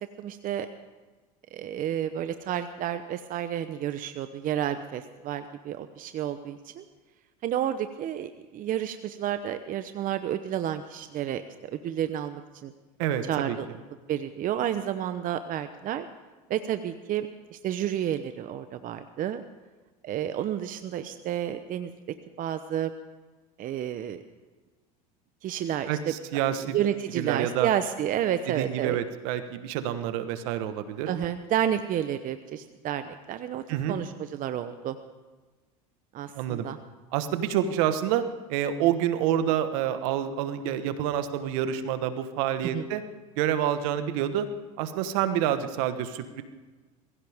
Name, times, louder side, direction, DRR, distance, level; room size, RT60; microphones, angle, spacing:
voice 1, 0.2-0.7 1.5-6.8 7.4-12.7 13.3-13.7 14.1-16.1 16.5-19.4 20.0-21.9 22.4-22.9 23.6-24.2 25.4-26.1 26.7-29.0 31.1-35.0 36.1-36.8 42.6-42.8, right 10 dB, 45° right, 10 dB, 0.9 m, -30 dB
voice 2, 13.0-13.6 25.9-26.6 27.1-27.7 28.6-31.1 33.7-34.0 36.3-36.6 37.1-38.2 38.5-43.0 43.4-44.5 44.8-46.4, right 10 dB, 70° right, 10 dB, 1.4 m, -28 dB
21.5 x 16.0 x 3.6 m, 1.3 s
hypercardioid pair, 85°, 19 cm